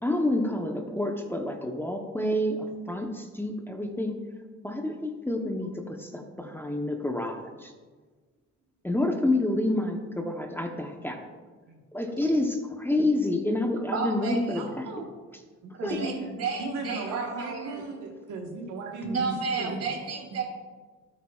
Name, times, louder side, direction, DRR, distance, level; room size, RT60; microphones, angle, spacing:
voice 1, 0.0-4.2 4.6-7.7 8.8-11.3 11.9-14.9 15.8-16.0, left 1 dB, 5° left, 2 dB, 0.8 m, -28 dB
voice 2, 13.9-14.6 15.7-17.8 19.0-20.4, right 4 dB, 55° right, 0 dB, 2.9 m, -32 dB
voice 3, 14.5-15.1 15.6-16.2 16.6-19.8, right 3 dB, 80° right, 1 dB, 1.4 m, -36 dB
13.0 x 8.6 x 2.3 m, 1.4 s
cardioid pair, 90°, 30 cm